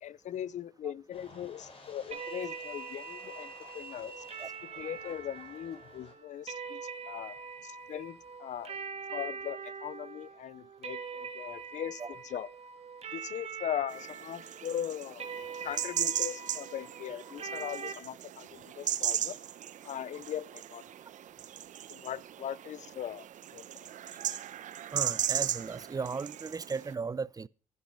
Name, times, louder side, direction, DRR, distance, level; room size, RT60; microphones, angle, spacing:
voice 1, 0.0-4.2 4.6-8.7 9.1-12.5 13.1-15.3 15.6-19.4 19.8-20.8 21.9-23.3 23.5-23.6, left 10 dB, 65° left, 0.6 m, -39 dB
sound 1, 1.1-6.1, right 2 dB, 45° left, 4.6 m, -50 dB
sound 2, 2.1-17.9, right 5 dB, 50° right, 2.4 m, -43 dB
sound 3, 13.9-26.9, right 11 dB, 65° right, 0.9 m, -37 dB
voice 2, 24.9-27.5, right 4 dB, 25° right, 0.5 m, -36 dB
12.0 x 10.0 x 5.4 m
cardioid pair, 80°, 13 cm